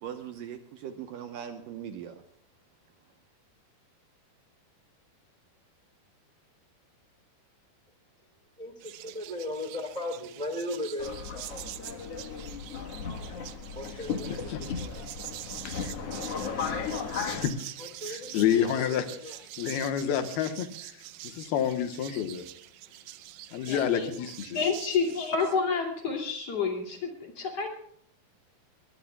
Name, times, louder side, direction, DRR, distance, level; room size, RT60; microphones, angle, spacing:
voice 1, 0.0-2.2, right 9 dB, 70° right, 6 dB, 2.3 m, -40 dB
voice 2, 8.6-12.1 13.7-15.0 16.9-17.2 17.8-19.4, left 1 dB, 10° right, 5 dB, 2.4 m, -38 dB
sound 1, 8.8-25.6, right 15 dB, 85° right, 3.0 m, -45 dB
Subway metro underground, 11.0-17.5, left 6 dB, 55° left, 1.8 m, -36 dB
voice 3, 16.5-17.7 18.0-22.5 23.5-24.6, left 9 dB, 75° left, 8 dB, 3.0 m, -30 dB
voice 4, 23.7-24.2 24.5-27.7, left 5 dB, 40° left, 2 dB, 3.2 m, -29 dB
21.5 x 20.5 x 2.3 m, 0.63 s
omnidirectional pair, 4.7 m